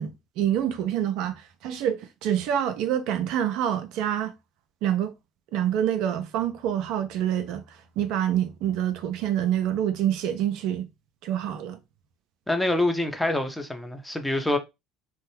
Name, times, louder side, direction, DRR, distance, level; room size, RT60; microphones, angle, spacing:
voice 1, 0.0-4.3 4.8-5.1 5.5-10.9 11.2-11.8, right 10 dB, 60° right, 0.3 m, -27 dB
voice 2, 12.5-14.6, left 1 dB, 5° left, 0.6 m, -25 dB
2.6 x 2.1 x 2.9 m
figure-of-eight pair, 60°, 0 cm